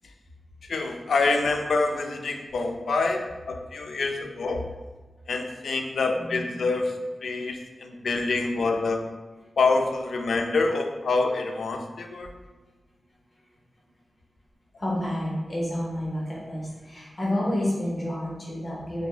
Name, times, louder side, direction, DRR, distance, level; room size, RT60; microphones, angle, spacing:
voice 1, 0.7-4.6 5.3-6.9 7.2-9.0 9.6-12.3, left 3 dB, 85° left, 4 dB, 0.4 m, -26 dB
voice 2, 6.2-6.5 14.8-19.1, left 1 dB, 30° left, -5 dB, 1.0 m, -29 dB
2.7 x 2.6 x 3.8 m, 1.2 s
wide cardioid pair, 165°, 0 cm